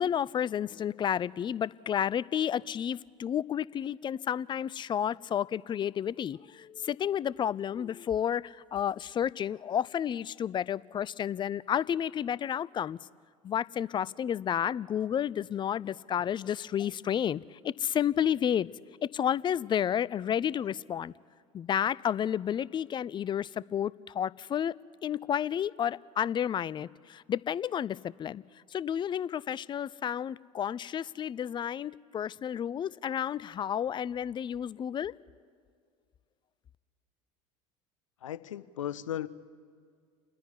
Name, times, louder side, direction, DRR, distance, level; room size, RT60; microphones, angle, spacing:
voice 1, 0.0-13.0 13.4-18.7 19.1-21.1 21.5-24.7 25.0-28.4 28.7-35.1, left 9 dB, 30° left, 21 dB, 0.5 m, -31 dB
voice 2, 38.2-39.3, left 11 dB, 85° left, 16 dB, 0.7 m, -36 dB
28.5 x 10.5 x 9.8 m, 2.1 s
hypercardioid pair, 80°, 16 cm